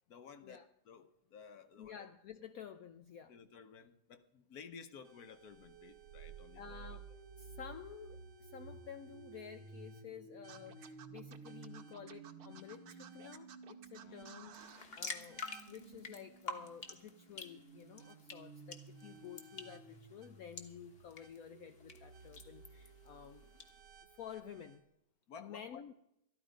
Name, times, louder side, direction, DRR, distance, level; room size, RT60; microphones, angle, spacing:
voice 1, 0.1-2.1 3.3-7.0 14.0-14.2 25.3-25.8, left 6 dB, 60° left, 1.1 m, -54 dB
voice 2, 1.8-3.3 6.6-7.1 7.4-23.5 24.2-24.8 25.4-25.9, left 8 dB, 85° left, 0.7 m, -52 dB
sound 1, 5.0-24.8, right 4 dB, 80° right, 2.0 m, -55 dB
Scratching (performance technique), 10.5-14.9, right 8 dB, 60° right, 1.3 m, -55 dB
sound 2, 14.5-23.7, left 3 dB, 35° left, 1.2 m, -50 dB
13.0 x 12.5 x 5.1 m
omnidirectional pair, 2.2 m